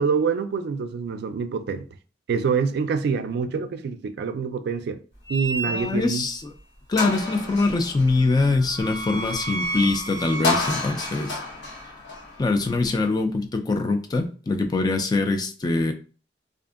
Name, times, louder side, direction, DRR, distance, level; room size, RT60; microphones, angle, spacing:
voice 1, 0.0-1.9 2.3-5.0 5.3-6.2, right 5 dB, 60° right, 0.3 m, -26 dB
sound 1, 5.3-6.2 6.6-6.7 7.0-13.1, left 1 dB, 65° left, 1.0 m, -30 dB
voice 2, 5.7-6.5 6.9-11.4 12.4-15.9, left 3 dB, 20° left, 0.3 m, -23 dB
2.6 x 2.5 x 2.4 m
head